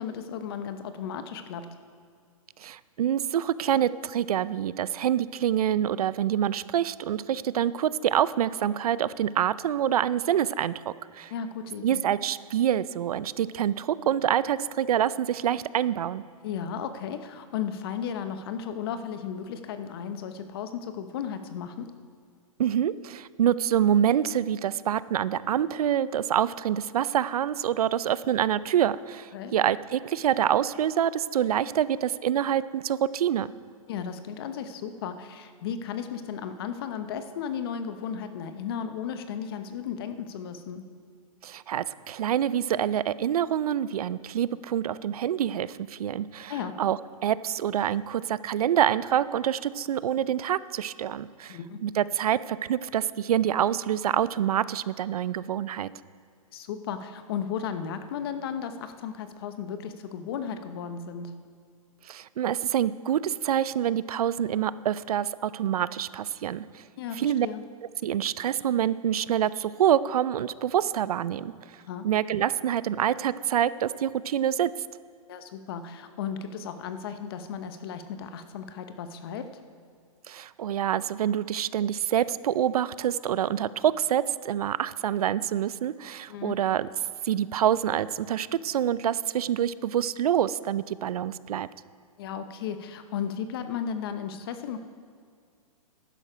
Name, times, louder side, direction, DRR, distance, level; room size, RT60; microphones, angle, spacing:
voice 1, 0.0-1.7 11.3-12.0 16.4-21.9 29.3-29.5 33.9-40.9 46.5-46.7 51.5-51.8 56.5-61.3 67.0-67.6 71.9-72.1 75.3-79.6 86.3-86.6 92.2-94.8, left 7 dB, 40° left, 9 dB, 0.8 m, -35 dB
voice 2, 2.6-11.3 11.8-16.2 22.6-33.5 41.4-46.5 46.8-55.9 62.1-66.8 67.1-67.5 68.0-71.5 72.0-74.7 80.3-86.9 87.2-91.7, right 10 dB, 75° right, 17 dB, 0.5 m, -26 dB
11.5 x 9.9 x 5.0 m, 2.2 s
hypercardioid pair, 160°, 19 cm